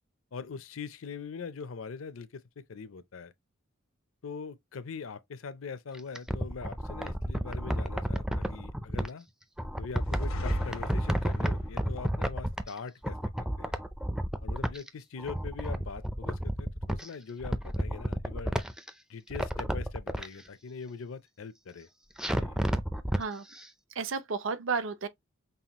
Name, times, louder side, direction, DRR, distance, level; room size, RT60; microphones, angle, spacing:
voice 1, 0.3-3.3 4.2-9.3 9.8-13.7 14.4-18.6 19.1-21.9 22.4-22.6, left 5 dB, 75° left, 0.5 m, -42 dB
sound 1, 5.9-9.1 9.6-12.8 13.0-14.9 15.2-17.1 17.4-18.9 19.3-20.3 22.2-23.2 23.6-23.7, equal, 5° right, 0.4 m, -31 dB
sound 2, 10.1-11.7, left 2 dB, 90° left, 0.9 m, -39 dB
voice 2, 23.1-23.5 23.9-25.1, right 5 dB, 65° right, 0.6 m, -32 dB
5.5 x 2.4 x 3.0 m
head